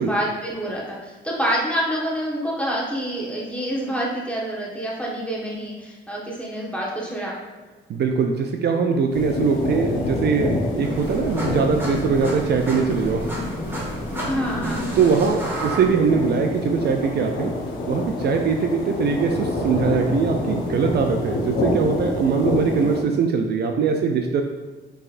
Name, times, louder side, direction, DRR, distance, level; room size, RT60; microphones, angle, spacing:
voice 1, 0.0-7.3 14.3-15.0, equal, 5° left, -5 dB, 1.4 m, -27 dB
voice 2, 7.9-13.3 15.0-17.6 17.9-24.4, right 5 dB, 55° right, 4 dB, 0.5 m, -22 dB
sound 1, 9.1-23.0, left 2 dB, 85° left, 0.7 m, -27 dB
sound 2, 10.8-16.4, right 1 dB, 10° right, 1.3 m, -33 dB
5.5 x 3.4 x 2.5 m, 1.3 s
cardioid pair, 90°, 20 cm